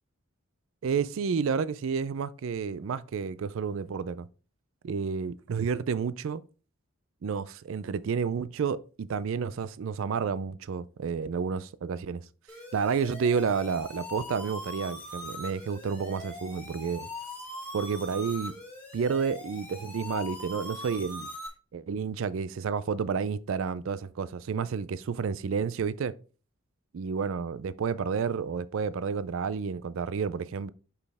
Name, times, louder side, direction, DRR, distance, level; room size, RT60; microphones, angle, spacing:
voice 1, 0.8-4.3 4.8-6.4 7.2-12.2 12.7-17.1 17.7-18.5 18.9-21.3 21.7-26.1 26.9-30.7, right 6 dB, 70° right, 0.4 m, -30 dB
sound 1, 12.5-21.5, left 1 dB, 10° left, 2.1 m, -41 dB
6.2 x 5.5 x 3.4 m
head